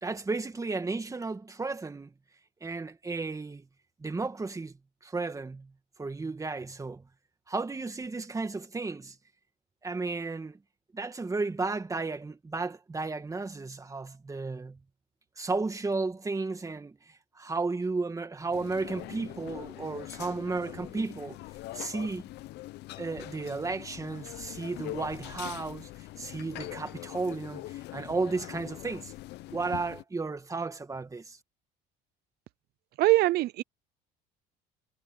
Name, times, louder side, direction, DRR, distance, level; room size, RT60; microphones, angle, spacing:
voice 1, 0.0-2.1 2.6-3.7 4.0-4.7 5.0-5.7 6.0-7.0 7.5-9.2 9.8-10.6 10.9-14.8 15.4-17.0 17.4-21.4 21.7-22.2 23.0-25.9 26.2-29.1 29.5-31.4, right 3 dB, 20° right, 2.2 m, -33 dB
sound 1, 18.5-30.0, left 17 dB, 70° left, 0.8 m, -43 dB
voice 2, 33.0-33.6, right 18 dB, 65° right, 0.5 m, -22 dB
cardioid pair, 100°, 18 cm